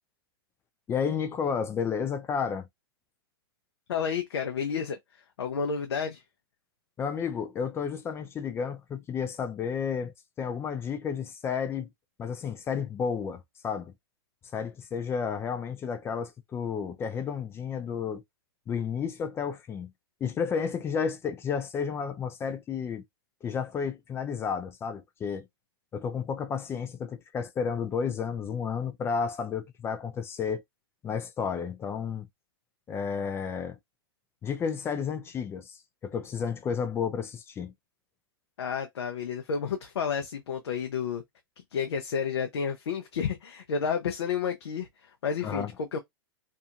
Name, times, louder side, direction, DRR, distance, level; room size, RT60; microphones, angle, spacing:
voice 1, 0.9-2.7 7.0-11.9 12.2-13.9 14.5-18.2 18.7-19.9 20.2-23.0 23.4-25.5 25.9-30.6 31.0-32.3 32.9-33.8 34.4-37.7 45.4-45.7, left 6 dB, 20° left, 0.3 m, -32 dB
voice 2, 3.9-6.2 38.6-41.2 41.7-46.0, left 6 dB, 85° left, 0.6 m, -31 dB
2.7 x 2.5 x 2.4 m
hypercardioid pair, 125°, 13 cm